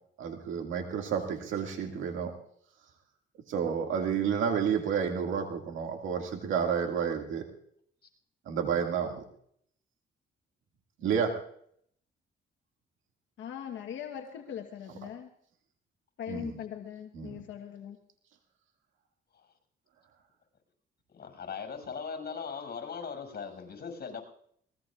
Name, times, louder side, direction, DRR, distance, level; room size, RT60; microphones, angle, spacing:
voice 1, 0.2-2.3 3.5-7.4 8.5-9.2 11.0-11.4 16.3-16.5 17.1-17.4, right 7 dB, 80° right, 3 dB, 2.1 m, -30 dB
voice 2, 13.4-15.3 16.2-18.0, left 9 dB, 70° left, 3 dB, 1.2 m, -40 dB
voice 3, 21.1-24.2, left 6 dB, 50° left, 3 dB, 6.2 m, -39 dB
24.0 x 19.5 x 2.4 m, 0.66 s
cardioid pair, 90°, 20 cm